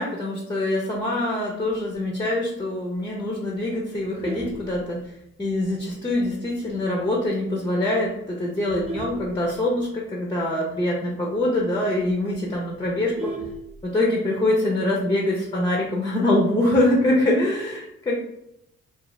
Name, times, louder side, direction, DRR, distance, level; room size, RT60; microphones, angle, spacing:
voice 1, 0.0-5.0 5.4-13.3 13.8-18.2, left 1 dB, 15° left, -1 dB, 0.6 m, -24 dB
Vehicle horn car horn honking, 3.9-5.4 5.9-6.1 6.4-6.5 7.0-7.1 7.3-7.7 8.3-10.1 10.5-10.6 10.8-10.9 11.4-11.5 11.8-11.9 12.2-14.2 15.4-15.8, right 2 dB, 20° right, 0.9 m, -36 dB
2.5 x 2.4 x 3.0 m, 0.81 s
cardioid pair, 90°, 30 cm